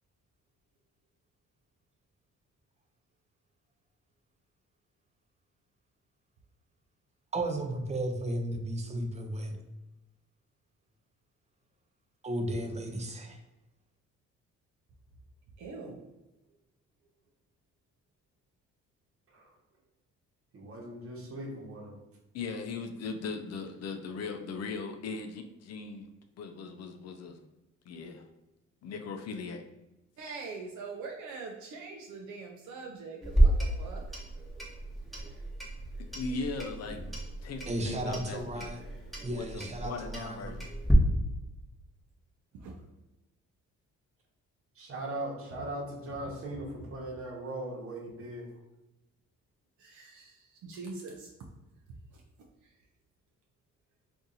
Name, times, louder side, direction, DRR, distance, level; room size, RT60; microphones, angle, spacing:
voice 1, 7.3-9.6 12.2-13.4 37.7-38.8 39.2-40.5, right 1 dB, 20° right, 4 dB, 0.6 m, -34 dB
voice 2, 15.6-16.0 30.2-34.0 42.5-42.8 45.5-45.6 49.8-51.3 52.1-52.2 52.6-52.7, right 4 dB, 75° right, 0 dB, 0.5 m, -43 dB
voice 3, 20.5-22.0 44.7-48.5, right 1 dB, 45° right, -1 dB, 1.1 m, -39 dB
voice 4, 22.3-26.1 26.4-27.4 27.9-28.3 28.8-29.6 36.1-37.1 37.4-38.7 39.3-40.7, left 4 dB, 60° left, 5 dB, 0.4 m, -38 dB
Clock, 33.2-40.9, right 1 dB, ahead, 0.9 m, -32 dB
2.7 x 2.5 x 3.8 m, 0.98 s
cardioid pair, 90°, 30 cm